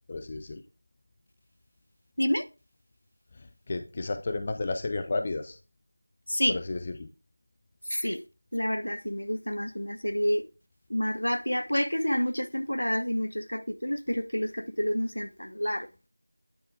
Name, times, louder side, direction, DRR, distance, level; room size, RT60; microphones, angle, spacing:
voice 1, 0.1-0.6 3.3-5.6 6.5-7.1, left 3 dB, 20° left, 0.3 m, -32 dB
voice 2, 6.3-6.6 7.9-8.2 8.5-10.4 10.9-15.9, equal, 80° left, 0.9 m, -29 dB
9.3 x 3.4 x 4.8 m
figure-of-eight pair, 175°, 0 cm